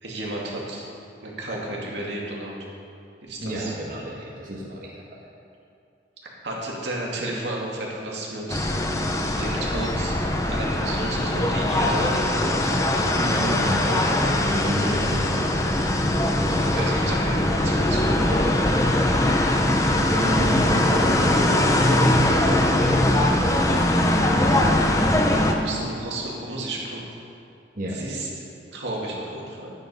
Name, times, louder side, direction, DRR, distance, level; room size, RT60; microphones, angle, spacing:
voice 1, 0.0-0.9 1.2-2.6 3.2-3.7 6.2-8.8 9.4-10.2 10.4-12.5 16.7-18.4 25.2-27.1 27.9-28.3 28.7-29.7, right 1 dB, 90° right, -3 dB, 2.4 m, -32 dB
voice 2, 3.4-4.9 12.6-12.8 13.2-15.8 18.3-18.8 20.0-24.6 27.7-28.0, right 1 dB, 50° right, -4 dB, 1.6 m, -31 dB
sound 1, 8.5-25.5, left 1 dB, 20° left, 0.7 m, -21 dB
11.0 x 9.1 x 5.5 m, 2.5 s
head